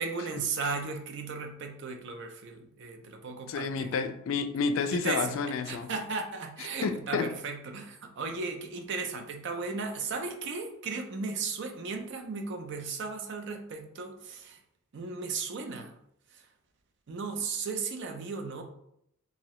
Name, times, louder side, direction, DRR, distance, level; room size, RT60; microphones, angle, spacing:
voice 1, 0.0-3.9 4.9-5.4 5.7-14.6 14.9-15.9 16.3-16.5 17.1-18.6, right 4 dB, 60° right, 0.5 m, -36 dB
voice 2, 3.5-5.9 6.8-7.3, left 5 dB, 75° left, 0.3 m, -30 dB
2.8 x 2.6 x 3.0 m
head